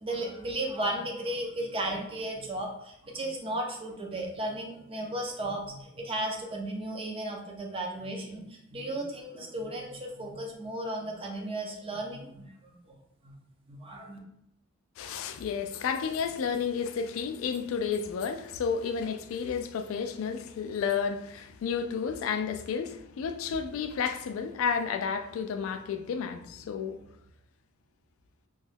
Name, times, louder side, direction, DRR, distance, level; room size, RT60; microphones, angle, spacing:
voice 1, 0.0-12.7 13.2-13.3 13.7-14.2, right 1 dB, 30° right, 0.5 m, -35 dB
voice 2, 15.0-27.1, left 6 dB, 80° left, 0.3 m, -31 dB
2.9 x 2.2 x 3.2 m
head